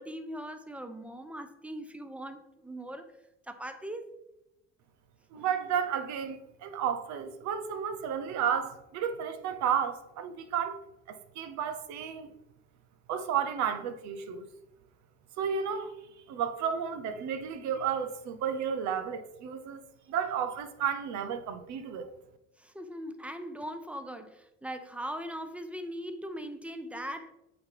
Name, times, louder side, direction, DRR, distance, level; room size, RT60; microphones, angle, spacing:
voice 1, 0.0-3.1 3.5-4.1 5.3-5.5 22.6-27.3, equal, 5° right, 0.8 m, -40 dB
voice 2, 5.3-10.8 11.1-12.3 13.1-14.5 15.4-15.9 16.3-19.8 20.1-22.1, right 8 dB, 65° right, 0.8 m, -32 dB
7.7 x 4.0 x 3.4 m
supercardioid pair, 75°, 30 cm